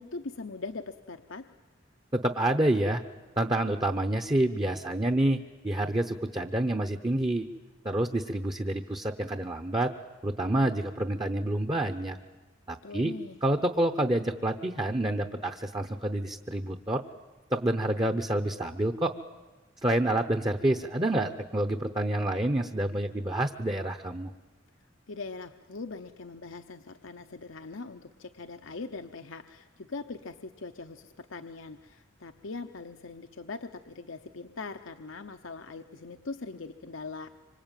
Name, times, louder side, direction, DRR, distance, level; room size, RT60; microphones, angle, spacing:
voice 1, 0.0-1.5 12.8-13.4 25.1-37.4, left 3 dB, 80° left, 7 dB, 0.9 m, -41 dB
voice 2, 2.1-3.0 3.4-7.5 7.8-9.9 10.2-12.2 12.7-13.1 13.4-17.0 17.5-19.1 19.8-24.3, right 1 dB, 20° right, 7 dB, 0.8 m, -28 dB
25.5 x 25.5 x 9.1 m, 1.3 s
head